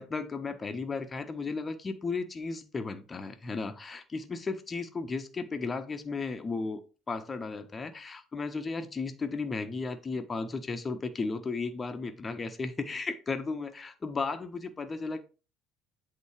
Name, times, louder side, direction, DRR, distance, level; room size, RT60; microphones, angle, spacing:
voice 1, 0.0-6.8 7.1-15.2, left 4 dB, 30° left, 1.3 m, -35 dB
8.3 x 3.9 x 5.0 m
hypercardioid pair, 60°, 0 cm